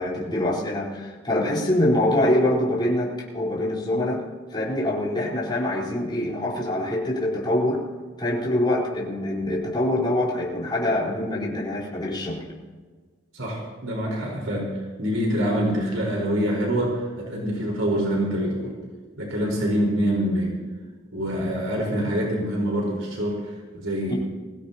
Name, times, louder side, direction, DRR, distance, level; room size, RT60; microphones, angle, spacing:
voice 1, 0.0-4.2 4.5-7.8 8.2-12.5 24.1-24.2, left 1 dB, 25° left, -6 dB, 4.2 m, -24 dB
voice 2, 13.3-18.7 19.2-20.6 21.1-24.1, equal, 85° right, -2 dB, 4.5 m, -25 dB
23.0 x 16.5 x 2.9 m, 1.4 s
head